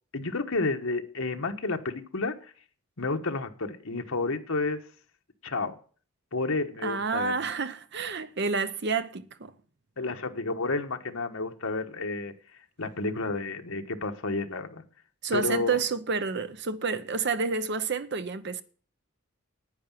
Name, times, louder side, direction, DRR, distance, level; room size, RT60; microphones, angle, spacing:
voice 1, 0.1-2.3 3.0-4.8 5.4-5.8 6.3-7.3 10.0-12.3 12.8-14.8 15.3-15.8, left 3 dB, 75° left, 1.4 m, -30 dB
voice 2, 6.8-9.5 15.2-18.6, right 4 dB, 55° right, 0.9 m, -29 dB
9.8 x 9.2 x 7.5 m
head